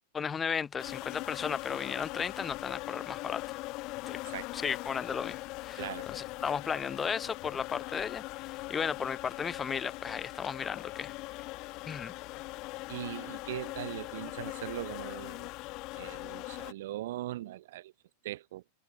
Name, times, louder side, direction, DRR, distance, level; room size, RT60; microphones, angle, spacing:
voice 1, 0.1-3.4 4.1-4.2 4.5-5.8 6.1-11.1 11.9-12.1, left 6 dB, 20° left, 0.4 m, -35 dB
sound 1, 0.8-16.7, left 22 dB, 40° left, 1.0 m, -41 dB
voice 2, 5.8-6.1 12.9-15.5 15.9-17.9 18.2-18.6, right 15 dB, 55° right, 0.9 m, -40 dB
figure-of-eight pair, 90°, 0 cm